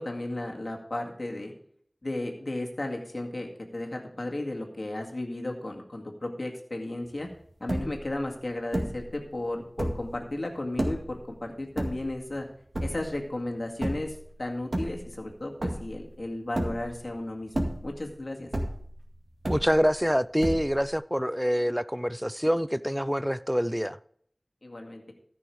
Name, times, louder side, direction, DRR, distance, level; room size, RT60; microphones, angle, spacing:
voice 1, 0.0-1.5 2.0-7.3 7.6-12.5 12.8-18.5 24.6-25.1, left 1 dB, 70° left, 1 dB, 2.1 m, -34 dB
sound 1, 7.2-7.3 7.5-8.1 8.7-9.1 9.6-10.2 10.8-11.2 11.8-12.3 12.7-13.2 13.8-14.2 14.6-15.3 15.6-16.1 16.5-17.1 17.5-18.1 18.5-19.0 19.4-20.0 20.4-20.9, right 1 dB, 60° right, 1.9 m, -31 dB
voice 2, 19.5-24.0, equal, 5° right, 18 dB, 0.4 m, -26 dB
14.0 x 6.3 x 4.8 m, 0.63 s
wide cardioid pair, 40°, 0 cm